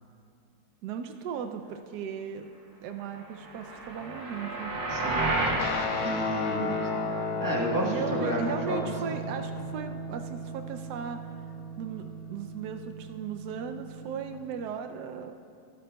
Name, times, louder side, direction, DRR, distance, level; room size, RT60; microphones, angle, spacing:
voice 1, 0.8-2.5 2.8-4.7 7.8-11.2 11.8-15.3, right 7 dB, 80° right, 6 dB, 0.9 m, -37 dB
sound 1, 3.4-5.7, right 2 dB, 65° right, 2.0 m, -30 dB
voice 2, 4.9-5.3 6.0-6.9 7.4-9.2, equal, 10° right, -3 dB, 1.1 m, -32 dB
Guitar, 5.6-14.4, left 2 dB, 55° left, 1.2 m, -34 dB
16.0 x 13.5 x 2.2 m, 2.4 s
omnidirectional pair, 2.3 m